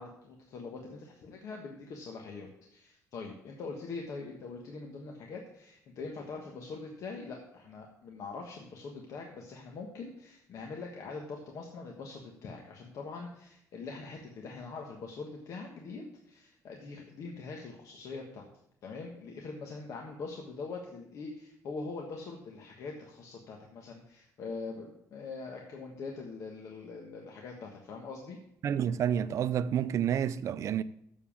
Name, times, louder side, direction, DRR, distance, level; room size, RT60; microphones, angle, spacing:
voice 1, 0.0-18.5 18.8-28.4, left 4 dB, 65° left, 1.4 m, -43 dB
voice 2, 28.6-30.8, right 9 dB, 55° right, 0.5 m, -29 dB
7.2 x 7.0 x 7.1 m
cardioid pair, 130°, 6 cm